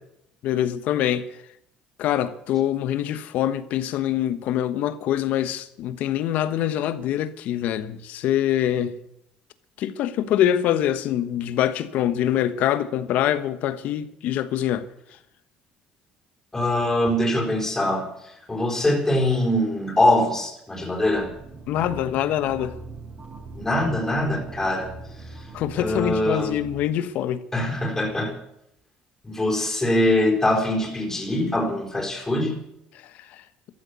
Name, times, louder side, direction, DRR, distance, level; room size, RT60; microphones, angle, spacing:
voice 1, 0.4-1.3 2.0-9.0 9.8-14.9 21.7-22.8 25.5-27.4 33.3-33.4, left 11 dB, 70° left, 1.2 m, -24 dB
voice 2, 16.5-21.3 23.5-24.9 25.3-25.4 25.7-26.6 27.5-28.4 29.2-32.6, left 1 dB, 15° left, 4.1 m, -23 dB
sound 1, 21.0-26.9, right 3 dB, 55° right, 6.8 m, -41 dB
14.5 x 12.0 x 8.3 m
supercardioid pair, 75°, 3 cm